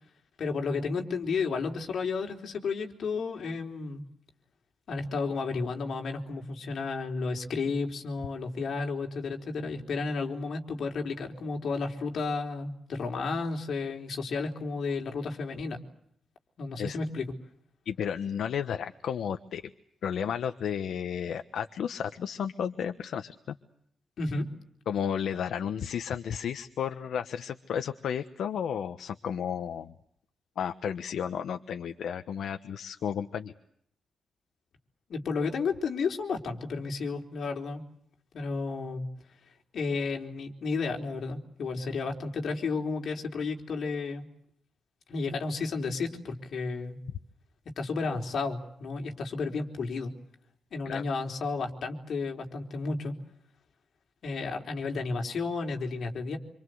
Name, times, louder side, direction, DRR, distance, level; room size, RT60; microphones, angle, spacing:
voice 1, 0.4-4.0 4.9-15.8 16.6-17.3 24.2-24.5 35.1-37.8 38.3-39.0 39.7-44.3 45.1-47.0 47.8-50.1 50.7-53.1 54.2-56.4, left 4 dB, 50° left, 2 dB, 4.1 m, -32 dB
voice 2, 17.8-19.6 20.0-23.6 24.9-29.9 30.6-33.5 50.8-51.0, left 8 dB, 70° left, 8 dB, 1.2 m, -33 dB
27.0 x 26.0 x 7.9 m, 0.71 s
wide cardioid pair, 180°, 0 cm